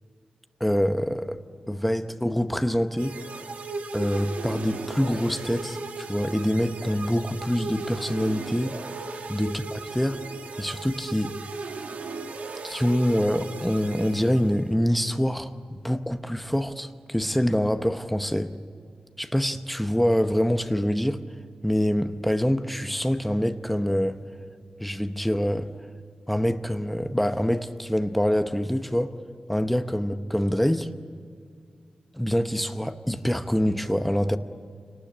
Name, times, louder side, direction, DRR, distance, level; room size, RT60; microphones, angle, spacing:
voice 1, 0.6-1.4 1.7-3.2 3.9-8.8 9.3-10.2 10.6-11.3 12.6-18.5 19.2-21.2 21.6-24.2 24.8-25.7 26.3-29.1 29.5-30.9 32.2-34.4, equal, 5° left, 0.9 m, -25 dB
sound 1, 3.0-14.8, right 4 dB, 80° right, 1.7 m, -36 dB
28.0 x 19.0 x 8.9 m
wide cardioid pair, 150°, 3 cm